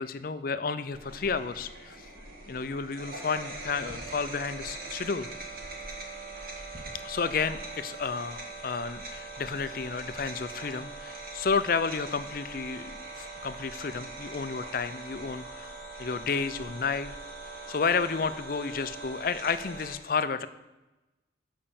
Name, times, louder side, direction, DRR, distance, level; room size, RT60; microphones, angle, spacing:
voice 1, 0.0-2.1 2.5-5.3 7.0-15.7 16.0-17.1 17.7-20.5, left 5 dB, 50° left, 13 dB, 0.4 m, -31 dB
sound 1, 0.9-19.9, right 2 dB, 50° right, 1.8 m, -42 dB
7.5 x 5.5 x 7.0 m, 1.0 s
head